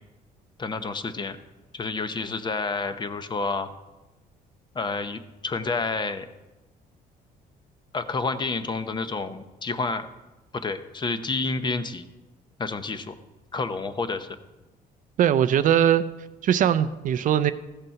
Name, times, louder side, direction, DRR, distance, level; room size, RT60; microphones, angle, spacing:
voice 1, 0.6-1.4 1.7-3.7 4.7-6.3 7.9-10.1 10.5-12.0 12.6-13.2 13.5-14.3, left 3 dB, 25° left, 10 dB, 0.8 m, -29 dB
voice 2, 15.2-16.0 16.4-17.5, right 10 dB, 55° right, 12 dB, 0.5 m, -20 dB
14.0 x 6.8 x 5.8 m, 1.1 s
cardioid pair, 110°, 16 cm